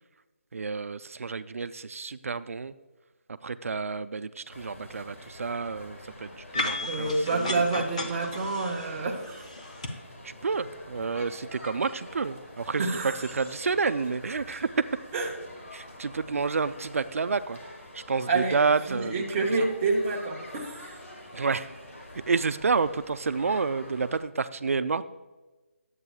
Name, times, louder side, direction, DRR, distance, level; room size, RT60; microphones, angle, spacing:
voice 1, 0.5-2.7 3.4-7.7 10.2-14.8 15.7-17.6 17.9-19.2 21.3-21.7 22.1-25.1, right 4 dB, 80° right, 12 dB, 0.4 m, -29 dB
sound 1, 4.5-24.2, left 1 dB, 85° left, 1.9 m, -46 dB
sound 2, 6.5-9.9, left 2 dB, 30° left, 0.6 m, -34 dB
voice 2, 6.9-9.5 12.8-13.2 15.1-15.3 18.3-21.0, right 3 dB, 15° right, -3 dB, 0.6 m, -28 dB
11.0 x 8.0 x 2.3 m, 1.2 s
hypercardioid pair, 175°, 7 cm